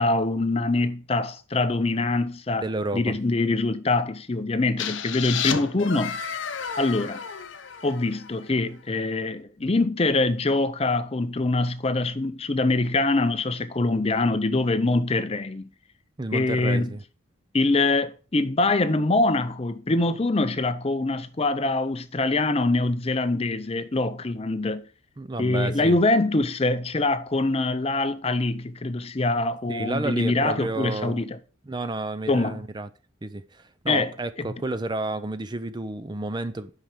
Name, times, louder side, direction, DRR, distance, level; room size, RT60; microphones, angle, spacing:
voice 1, 0.0-2.6 2.9-6.2 6.8-7.2 7.8-15.7 16.3-16.9 17.5-24.8 25.4-31.4 32.3-32.6 33.9-34.1 34.4-34.5, left 2 dB, 30° left, 0.5 m, -24 dB
voice 2, 2.6-3.2 16.2-17.0 25.2-26.0 29.7-31.2 31.7-32.9 33.2-36.7, right 2 dB, 20° right, 0.5 m, -31 dB
sound 1, 4.8-8.5, left 7 dB, 65° left, 0.8 m, -32 dB
9.2 x 5.7 x 5.0 m
head